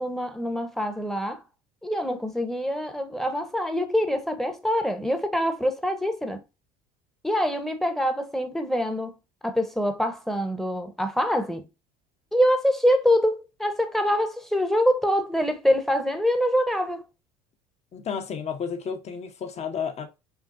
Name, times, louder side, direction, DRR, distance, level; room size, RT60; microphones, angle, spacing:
voice 1, 0.0-1.4 1.8-6.4 7.2-9.1 9.4-11.6 12.3-17.0, equal, ahead, 0.8 m, -25 dB
voice 2, 17.9-20.1, left 6 dB, 35° left, 0.9 m, -32 dB
5.7 x 2.5 x 2.5 m
hypercardioid pair, 80°, 19 cm